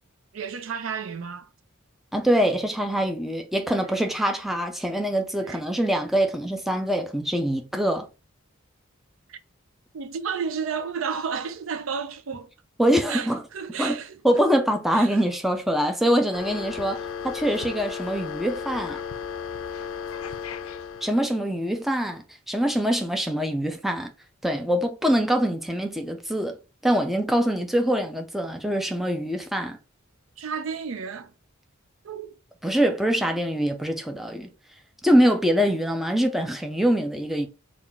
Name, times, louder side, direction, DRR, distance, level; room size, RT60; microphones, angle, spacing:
voice 1, 0.3-1.5 5.4-5.6 9.3-9.4 9.9-12.5 13.1-14.2 14.9-15.2 30.4-31.3 32.0-32.4, right 6 dB, 70° right, 0.5 m, -32 dB
voice 2, 2.1-8.1 12.8-13.4 13.8-14.0 14.2-19.0 21.0-24.1 24.4-26.6 26.8-29.8 32.6-34.5 35.0-37.5, equal, ahead, 0.5 m, -24 dB
sound 1, 16.3-21.3, left 7 dB, 80° left, 0.4 m, -34 dB
3.5 x 2.4 x 3.8 m
head